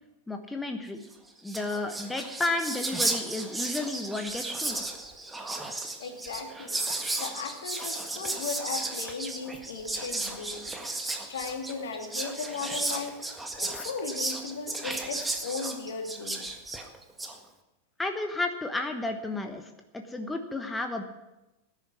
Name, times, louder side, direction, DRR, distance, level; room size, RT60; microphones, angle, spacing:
voice 1, 0.3-1.0 1.4-4.8 18.0-21.0, left 2 dB, 10° left, 5 dB, 1.3 m, -32 dB
Whispering, 1.1-1.2 1.4-17.3, right 2 dB, 10° right, 1.7 m, -34 dB
voice 2, 6.0-6.8 7.2-10.9 11.3-13.2 13.6-16.5, left 5 dB, 60° left, 4 dB, 2.5 m, -36 dB
18.0 x 10.5 x 6.2 m, 0.99 s
figure-of-eight pair, 90°, 0 cm